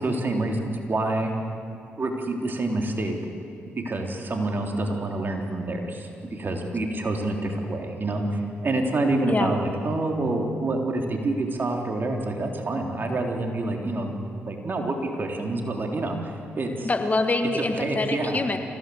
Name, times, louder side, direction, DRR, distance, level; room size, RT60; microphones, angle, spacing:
voice 1, 0.0-1.3 2.0-3.2 3.8-14.1 14.5-16.9 17.6-18.4, right 2 dB, 45° right, 2 dB, 3.7 m, -27 dB
voice 2, 16.8-18.6, left 2 dB, 35° left, 6 dB, 2.0 m, -25 dB
25.0 x 16.5 x 8.0 m, 2.4 s
supercardioid pair, 50°, 5 cm